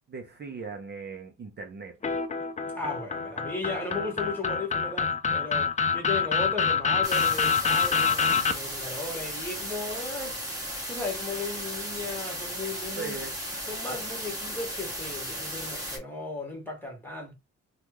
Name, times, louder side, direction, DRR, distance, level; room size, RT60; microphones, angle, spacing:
voice 1, 0.1-2.0 13.0-13.3, right 4 dB, 35° right, 0.7 m, -39 dB
sound 1, 2.0-8.5, left 5 dB, 25° left, 0.4 m, -26 dB
voice 2, 2.7-13.1 13.7-17.3, left 3 dB, 5° left, 1.7 m, -36 dB
sound 2, 7.0-16.0, equal, 10° right, 1.7 m, -35 dB
3.3 x 2.4 x 3.0 m
cardioid pair, 90°, 30 cm